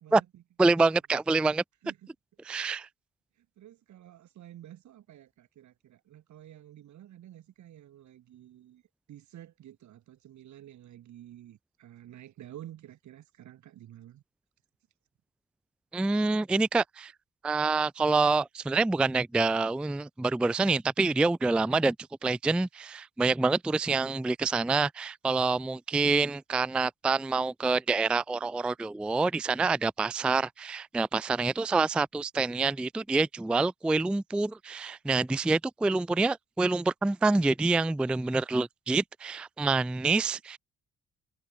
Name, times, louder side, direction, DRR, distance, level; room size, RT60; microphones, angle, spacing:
voice 1, 0.0-0.4 1.8-2.1 2.5-2.7 3.6-8.8 9.1-14.2, right 12 dB, 70° right, 2.0 m, -50 dB
voice 2, 0.6-1.6 2.4-2.9 15.9-17.1 17.4-22.0 22.2-40.6, right 3 dB, 5° right, 0.3 m, -27 dB
cardioid pair, 90°, 30 cm